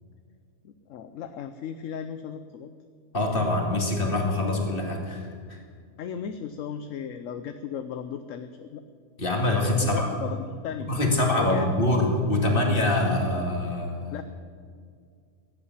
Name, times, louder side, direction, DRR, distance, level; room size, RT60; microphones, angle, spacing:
voice 1, 0.6-2.7 6.0-8.8 9.8-10.9 11.4-11.7 14.1-14.2, left 8 dB, 65° left, 9 dB, 1.0 m, -36 dB
voice 2, 3.1-5.6 9.2-10.1 10.9-14.2, left 2 dB, 40° left, 1 dB, 2.5 m, -24 dB
15.5 x 8.5 x 9.6 m, 2.1 s
omnidirectional pair, 1.5 m